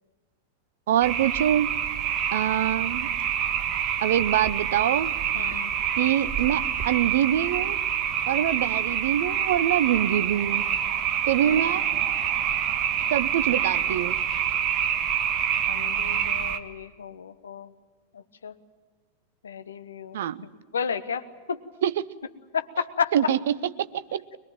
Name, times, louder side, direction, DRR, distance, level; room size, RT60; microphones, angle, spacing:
voice 1, 0.9-1.7 2.3-3.1 4.0-5.1 6.0-7.8 8.3-10.6 11.3-11.8 13.1-14.2 20.1-20.4 21.8-22.1 23.1-24.2, right 11 dB, 60° right, 15 dB, 0.7 m, -24 dB
sound 1, 1.0-16.6, right 9 dB, 35° right, 1.5 m, -26 dB
voice 2, 5.3-5.7 11.4-11.6 15.7-17.7 18.4-18.5 19.4-20.2 20.7-21.6 22.5-23.1, left 6 dB, 70° left, 10 dB, 1.1 m, -32 dB
22.5 x 21.5 x 9.1 m, 1.3 s
figure-of-eight pair, 90°, 0 cm